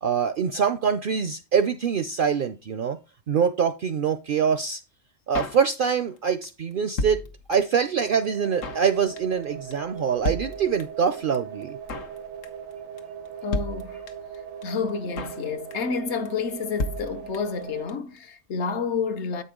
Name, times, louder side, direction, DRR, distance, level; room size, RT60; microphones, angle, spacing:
voice 1, 0.0-3.0 3.3-4.8 5.3-7.2 7.5-11.8, right 7 dB, 60° right, 0.5 m, -24 dB
Drum kit, 5.3-6.2 6.4-6.5 6.7-7.8 8.1-8.2 8.3-8.9 9.2-9.4 9.7-9.8 10.0-10.1 10.2-11.1 11.3-11.4 11.6-12.2 12.4-12.7 13.0-13.1 13.3-13.4 13.5-14.4 14.6-14.7 14.9-15.4 15.7-16.0 16.2-16.3 16.5-16.6 16.8-17.6 17.9-18.0 18.2-18.3, left 2 dB, 80° left, 1.3 m, -32 dB
sound 1, 8.0-17.9, right 8 dB, 90° right, 1.1 m, -39 dB
voice 2, 13.4-14.0 14.6-19.4, left 5 dB, 65° left, 1.0 m, -29 dB
8.2 x 5.3 x 3.7 m
omnidirectional pair, 1.3 m